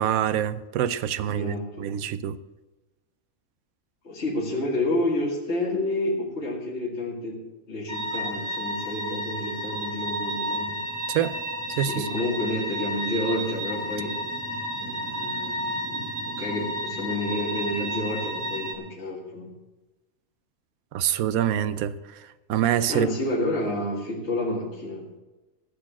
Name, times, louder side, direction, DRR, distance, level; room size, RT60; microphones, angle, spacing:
voice 1, 0.0-2.4 11.1-11.4 11.7-12.1 20.9-21.9 22.5-23.1, right 10 dB, 85° right, 1.1 m, -25 dB
voice 2, 1.2-1.9 4.0-7.4 7.7-10.8 11.9-14.1 14.8-19.5 22.9-25.1, left 1 dB, 50° left, 2.3 m, -29 dB
sound 1, 7.9-18.8, equal, 15° right, 1.2 m, -32 dB
14.0 x 6.8 x 7.4 m
omnidirectional pair, 1.4 m